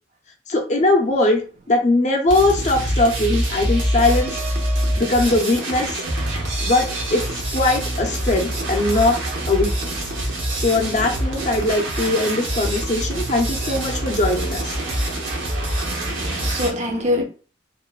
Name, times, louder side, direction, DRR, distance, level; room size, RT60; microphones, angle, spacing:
voice 1, 0.5-1.4 1.7-4.3 5.0-6.0 6.6-6.8 7.1-7.2 7.5-9.1 9.5-10.0 10.6-14.8, left 2 dB, 40° left, 0.5 m, -20 dB
sound 1, 2.3-16.7, right 1 dB, 90° right, 0.9 m, -25 dB
voice 2, 15.8-17.2, left 1 dB, 40° right, 0.5 m, -25 dB
3.0 x 2.0 x 2.3 m
head